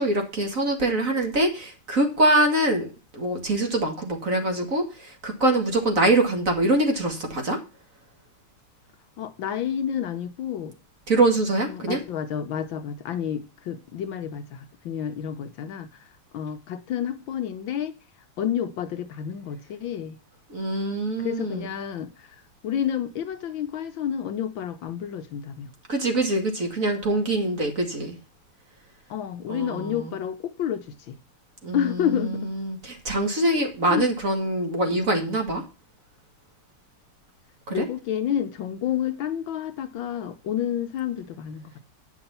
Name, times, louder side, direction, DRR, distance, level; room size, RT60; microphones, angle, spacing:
voice 1, 0.0-2.9 3.1-7.6 11.1-12.0 20.5-21.7 25.9-28.2 29.5-30.1 31.6-35.6 37.7-37.9, right 2 dB, 40° right, 2.2 m, -24 dB
voice 2, 9.2-10.7 11.7-16.0 16.3-17.9 18.4-20.2 21.2-25.7 29.1-31.2 31.7-32.5 33.9-34.1 37.7-41.7, left 9 dB, 70° left, 1.5 m, -30 dB
9.6 x 6.1 x 5.5 m
omnidirectional pair, 2.4 m